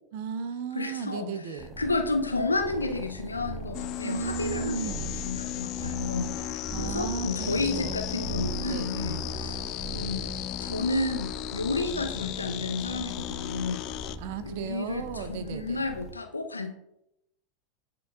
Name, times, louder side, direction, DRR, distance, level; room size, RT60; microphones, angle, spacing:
voice 1, 0.1-1.8 4.0-5.1 6.7-8.0 8.7-8.9 14.2-15.9, right 6 dB, 60° right, 9 dB, 0.6 m, -35 dB
voice 2, 0.7-1.3 1.8-9.6 9.9-10.3 10.6-13.9 14.4-16.7, left 3 dB, 90° left, 4 dB, 0.7 m, -31 dB
sound 1, 1.6-16.1, right 2 dB, 5° right, 1.1 m, -40 dB
sound 2, 3.7-14.2, left 13 dB, 45° left, 0.3 m, -36 dB
11.0 x 3.9 x 2.3 m, 0.85 s
figure-of-eight pair, 85°, 0 cm